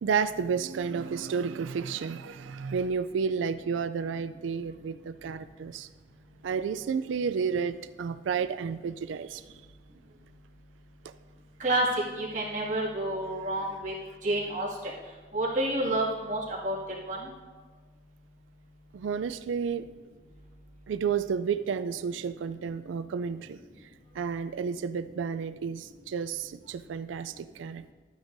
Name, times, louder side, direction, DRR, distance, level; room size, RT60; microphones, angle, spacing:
voice 1, 0.0-5.9 6.4-9.4 18.9-19.9 20.9-23.6 24.1-27.9, right 6 dB, 90° right, 13 dB, 0.3 m, -31 dB
voice 2, 12.2-13.9 14.2-14.9 15.3-16.8 17.1-17.3, right 1 dB, 40° right, -6 dB, 2.1 m, -29 dB
12.5 x 9.4 x 2.6 m, 1.4 s
head